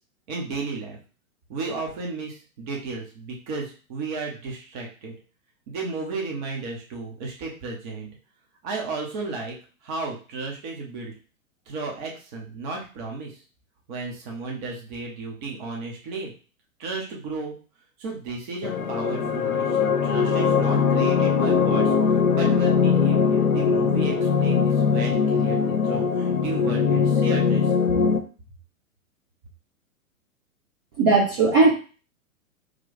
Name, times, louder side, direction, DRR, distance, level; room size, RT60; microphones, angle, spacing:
voice 1, 0.3-1.0 1.5-5.1 5.7-8.1 8.6-9.5 9.8-11.1 11.7-13.4 13.9-16.3 16.8-17.5 18.0-27.7, right 3 dB, 35° right, -1 dB, 1.0 m, -33 dB
sound 1, 18.6-28.2, left 6 dB, 75° left, 0.7 m, -21 dB
voice 2, 31.0-31.7, right 3 dB, 20° right, -3 dB, 0.4 m, -17 dB
3.2 x 2.3 x 4.0 m, 0.37 s
figure-of-eight pair, 110°, 42 cm